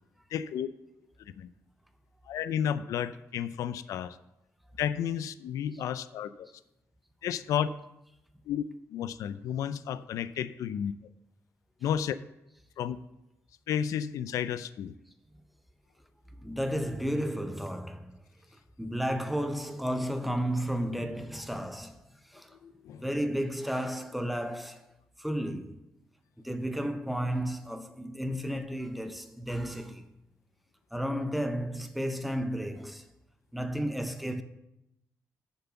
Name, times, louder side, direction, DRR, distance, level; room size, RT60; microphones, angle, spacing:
voice 1, 0.3-0.7 1.2-1.5 2.3-4.2 4.8-6.5 7.2-7.7 8.5-8.6 8.9-10.9 11.8-12.2 12.8-13.0 13.7-14.9 22.6-23.0, left 9 dB, 85° left, 0.4 m, -32 dB
voice 2, 16.4-18.2 18.8-22.6 22.9-24.8 25.2-25.8 26.4-30.0 30.9-33.1 33.5-34.4, equal, ahead, 0.6 m, -33 dB
7.6 x 5.8 x 7.0 m
cardioid pair, 145°, 6 cm